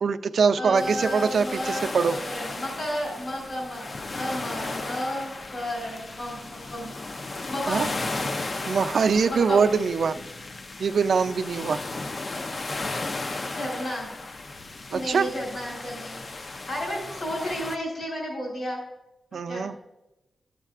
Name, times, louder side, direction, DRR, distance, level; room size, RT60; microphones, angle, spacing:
voice 1, 0.0-2.2 7.7-7.9 8.7-10.1 10.8-11.8 14.9-15.3 19.3-19.7, right 5 dB, 70° right, 8 dB, 0.4 m, -23 dB
voice 2, 0.5-7.0 7.5-7.9 9.3-9.7 13.4-14.1 14.9-16.2 16.7-18.8 19.3-19.7, equal, 60° left, -4 dB, 3.3 m, -32 dB
sound 1, 0.8-17.8, left 2 dB, 40° left, 0.5 m, -35 dB
13.0 x 7.4 x 2.5 m, 0.97 s
wide cardioid pair, 95°, 0 cm